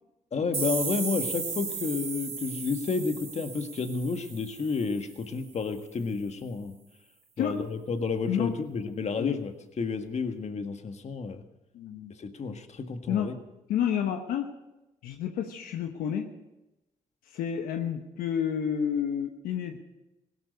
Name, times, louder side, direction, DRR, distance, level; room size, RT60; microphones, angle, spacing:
voice 1, 0.3-6.8 7.4-11.4 12.2-13.4, left 4 dB, 50° left, 7 dB, 1.7 m, -31 dB
sound 1, 0.5-5.2, right 5 dB, 45° right, 1.9 m, -35 dB
voice 2, 11.7-12.1 13.1-13.3 13.7-14.5 15.0-16.3 17.3-19.8, left 8 dB, 85° left, 5 dB, 1.1 m, -30 dB
17.0 x 12.0 x 6.5 m, 0.97 s
supercardioid pair, 55°, 15 cm